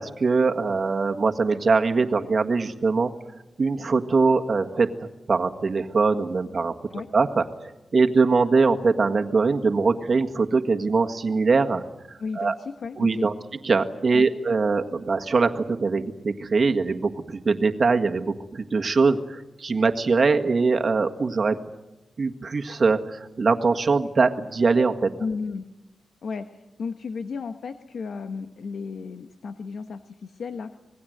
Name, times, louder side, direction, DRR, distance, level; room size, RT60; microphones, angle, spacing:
voice 1, 0.0-3.1 3.6-6.8 7.1-11.8 12.4-12.5 13.0-13.3 13.6-21.6 22.2-25.1, right 4 dB, 50° right, 5 dB, 1.7 m, -22 dB
voice 2, 12.2-13.3 14.1-14.3 25.2-25.7 26.2-30.8, left 5 dB, 80° left, 8 dB, 1.2 m, -34 dB
26.5 x 20.5 x 7.9 m, 1.0 s
wide cardioid pair, 90°, 0 cm